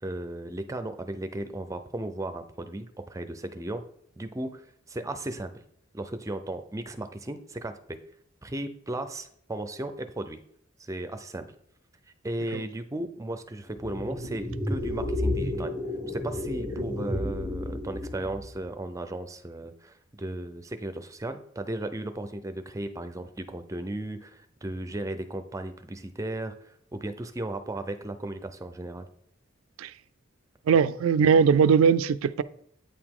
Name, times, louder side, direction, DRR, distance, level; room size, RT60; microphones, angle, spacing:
voice 1, 0.0-3.8 4.2-5.5 5.9-8.0 8.4-10.4 10.8-11.5 12.2-15.7 16.1-29.1, right 1 dB, 15° right, 9 dB, 0.5 m, -35 dB
sound 1, 13.7-18.6, left 1 dB, 10° left, 1.2 m, -31 dB
voice 2, 30.7-32.4, right 6 dB, 75° right, 15 dB, 0.3 m, -20 dB
8.8 x 4.9 x 3.7 m, 0.67 s
head